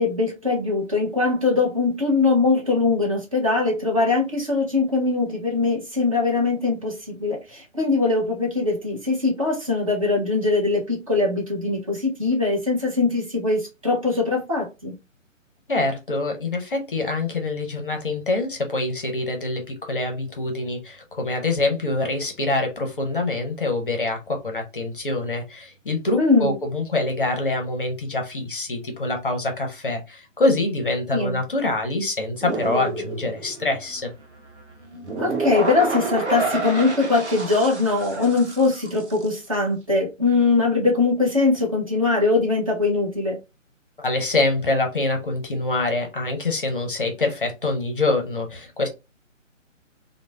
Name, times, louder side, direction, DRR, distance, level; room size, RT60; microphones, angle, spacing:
voice 1, 0.0-14.9 26.2-26.5 31.1-31.4 35.2-43.4, left 3 dB, 25° right, 0.6 m, -22 dB
voice 2, 15.7-34.1 44.0-48.9, left 2 dB, 45° left, 0.6 m, -25 dB
sound 1, 32.4-39.4, right 3 dB, 60° right, 0.9 m, -29 dB
3.0 x 2.0 x 2.2 m
figure-of-eight pair, 145°, 39 cm